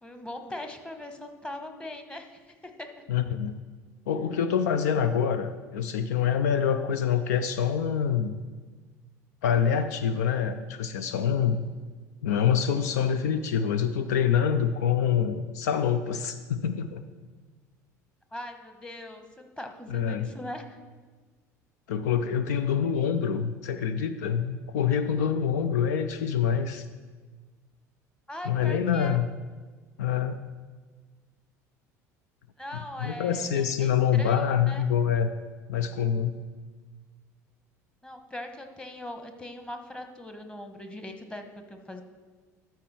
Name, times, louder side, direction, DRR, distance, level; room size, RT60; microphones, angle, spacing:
voice 1, 0.0-2.9 18.3-20.8 28.3-29.2 32.6-34.8 38.0-42.0, left 1 dB, 10° left, 6 dB, 1.2 m, -40 dB
voice 2, 3.1-3.6 4.1-8.4 9.4-11.7 12.2-17.0 19.9-20.3 21.9-26.9 28.5-29.3 30.0-30.4 33.0-35.3 35.7-36.4, left 8 dB, 70° left, 11 dB, 0.4 m, -26 dB
13.0 x 4.6 x 4.3 m, 1.4 s
hypercardioid pair, 65°, 9 cm